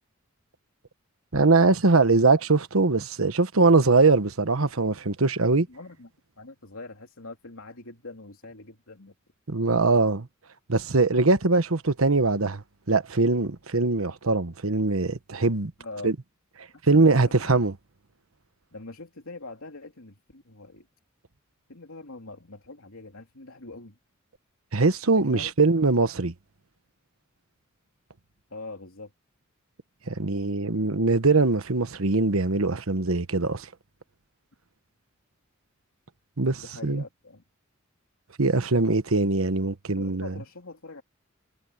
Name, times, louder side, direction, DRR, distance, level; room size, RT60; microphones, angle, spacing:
voice 1, 1.3-5.7 9.5-10.3 10.7-12.6 12.9-15.7 16.0-16.1 16.9-17.7 24.7-26.3 30.1-33.7 36.4-37.0 38.4-40.3, right 3 dB, 80° right, 1.3 m, -22 dB
voice 2, 5.7-6.1 6.4-9.1 15.8-16.1 16.7-17.6 18.7-20.9 21.7-24.0 25.1-25.8 28.5-29.1 36.6-37.4 40.0-41.0, left 2 dB, 85° left, 3.1 m, -43 dB
head